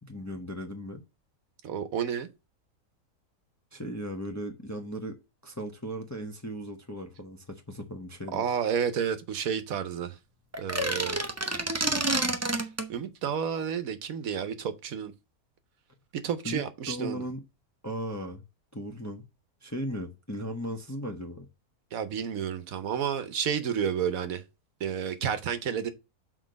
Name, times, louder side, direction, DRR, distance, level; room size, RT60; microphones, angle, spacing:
voice 1, 0.0-1.0 3.7-5.2 5.4-8.4 16.4-17.4 17.8-18.4 18.7-19.2 19.6-21.4, equal, 15° left, 0.7 m, -37 dB
voice 2, 1.6-2.3 8.3-10.2 10.6-11.2 11.7-12.0 12.4-12.6 12.9-15.1 16.1-17.2 21.9-24.4 24.8-25.9, right 7 dB, 65° right, 1.1 m, -31 dB
sound 1, 10.5-12.9, right 2 dB, 20° right, 0.4 m, -28 dB
6.1 x 4.4 x 5.1 m
omnidirectional pair, 1.6 m